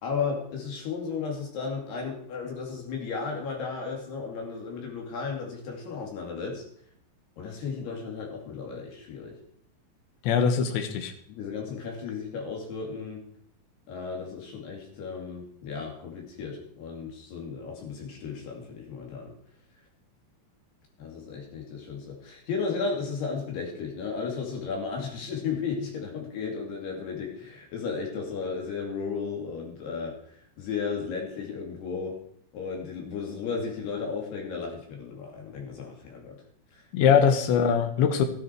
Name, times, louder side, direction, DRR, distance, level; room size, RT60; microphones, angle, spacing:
voice 1, 0.0-6.6 7.4-9.4 11.3-13.2 13.9-19.3 21.0-30.1 30.6-32.2 32.5-36.4 37.1-37.2, left 5 dB, 65° left, 0 dB, 4.6 m, -34 dB
voice 2, 10.2-11.1 36.9-38.3, left 7 dB, 85° left, 7 dB, 3.5 m, -22 dB
15.5 x 10.0 x 4.5 m, 0.66 s
omnidirectional pair, 5.1 m